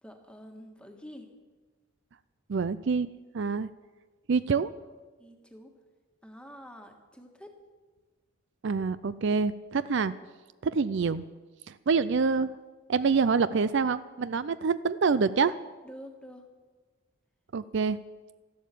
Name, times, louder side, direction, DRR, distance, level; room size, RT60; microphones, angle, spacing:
voice 1, 0.0-1.3 5.2-5.7 6.2-7.6 15.8-16.5, equal, 5° left, 4 dB, 1.6 m, -47 dB
voice 2, 2.5-3.1 3.3-3.7 4.3-4.7 8.6-10.1 10.6-11.2 11.9-12.5 12.9-15.5 17.5-18.0, right 5 dB, 55° right, 15 dB, 0.4 m, -26 dB
13.5 x 12.0 x 8.4 m, 1.4 s
head